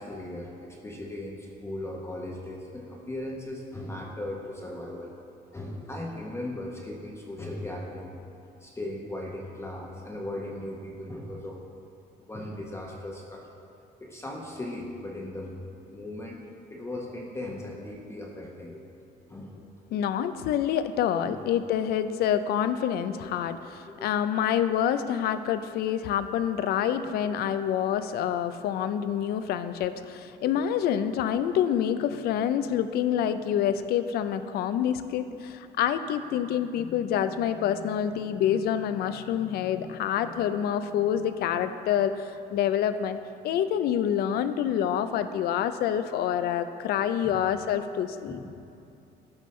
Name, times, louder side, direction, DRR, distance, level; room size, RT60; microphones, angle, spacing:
voice 1, 0.0-5.1 5.5-8.1 8.6-11.6 12.2-13.5 14.0-15.6 15.9-16.4 16.7-18.9 19.3-19.6 21.2-21.4 23.2-23.4 23.9-24.3 27.2-27.6 47.2-47.5 48.3-48.5, left 1 dB, 15° left, -2 dB, 0.8 m, -38 dB
voice 2, 19.9-43.2 43.4-48.4, left 9 dB, 70° left, 11 dB, 0.4 m, -27 dB
12.5 x 5.3 x 3.2 m, 2.7 s
cardioid pair, 110°, 17 cm